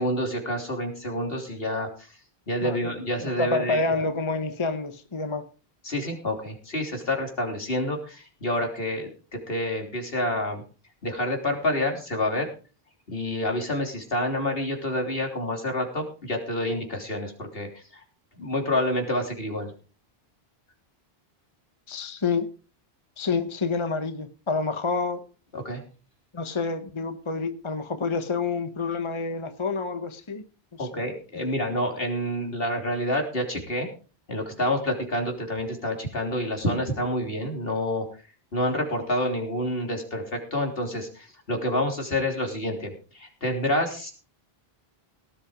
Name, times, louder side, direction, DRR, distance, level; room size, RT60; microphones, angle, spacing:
voice 1, 0.0-2.1 2.5-4.1 4.4-4.5 5.8-10.6 11.0-12.5 13.1-18.0 18.4-19.7 25.5-25.8 30.8-33.9 34.3-38.1 38.5-44.1, left 1 dB, 70° left, 3 dB, 3.6 m, -28 dB
voice 2, 3.4-5.5 21.9-22.5 23.2-25.2 26.3-30.4 30.7-30.9 31.3-31.5, left 4 dB, 30° left, 9 dB, 1.0 m, -28 dB
18.0 x 8.5 x 5.0 m, 0.37 s
omnidirectional pair, 1.0 m